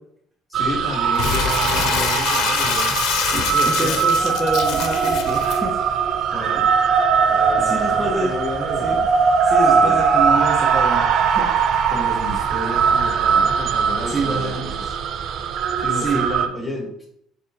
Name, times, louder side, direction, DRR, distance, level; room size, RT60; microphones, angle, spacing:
voice 1, 0.5-3.0 3.5-4.1 6.3-6.7 7.3-9.1 9.7-10.0 11.9-14.8 15.8-17.1, left 2 dB, 10° left, -3 dB, 1.5 m, -31 dB
sound 1, 0.5-16.5, right 6 dB, 55° right, 0.3 m, -20 dB
Crumpling crinkling, 1.2-5.6, left 8 dB, 75° left, 0.4 m, -24 dB
voice 2, 3.2-5.8 7.6-8.4 8.8-9.0 9.4-11.5 14.1-14.7 15.9-16.2, right 2 dB, 10° right, -5 dB, 0.7 m, -27 dB
6.5 x 2.9 x 2.6 m, 0.73 s
cardioid pair, 145°, 0 cm